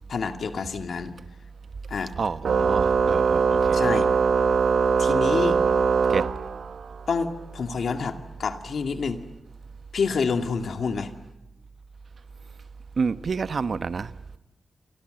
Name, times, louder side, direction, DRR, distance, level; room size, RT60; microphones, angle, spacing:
voice 1, 0.1-1.1 1.9-2.1 3.7-4.1 5.0-5.6 7.1-9.2 9.9-11.1, left 5 dB, 80° left, 2.2 m, -28 dB
voice 2, 2.2-3.9 6.1-6.3 13.0-14.2, right 5 dB, 65° right, 1.0 m, -29 dB
Organ, 2.4-7.0, right 5 dB, 90° right, 1.2 m, -22 dB
29.0 x 25.5 x 7.8 m
wide cardioid pair, 80°, 0 cm